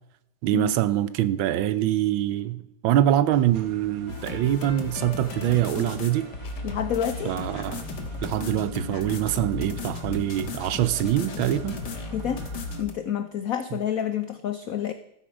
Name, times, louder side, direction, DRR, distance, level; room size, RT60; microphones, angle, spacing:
voice 1, 0.4-6.3 7.2-7.9 8.2-11.8, right 12 dB, 75° right, 1.4 m, -24 dB
sound 1, 3.3-12.8, right 6 dB, 55° right, 1.2 m, -48 dB
sound 2, 4.1-12.9, left 3 dB, 60° left, 1.8 m, -35 dB
voice 2, 6.6-7.4 12.1-12.4 12.8-14.9, left 9 dB, 90° left, 0.7 m, -28 dB
14.0 x 8.2 x 5.2 m
omnidirectional pair, 2.2 m